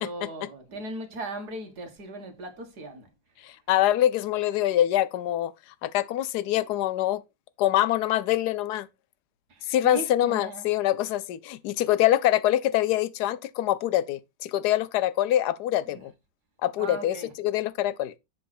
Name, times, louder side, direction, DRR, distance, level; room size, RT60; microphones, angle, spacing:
voice 1, 0.0-3.1 9.5-10.7 15.9-16.0 16.8-17.3, right 2 dB, 60° right, 2.2 m, -38 dB
voice 2, 3.4-5.5 5.8-7.2 7.6-8.9 9.7-16.1 16.6-18.1, left 13 dB, 70° left, 1.1 m, -25 dB
7.5 x 5.4 x 4.3 m
omnidirectional pair, 2.0 m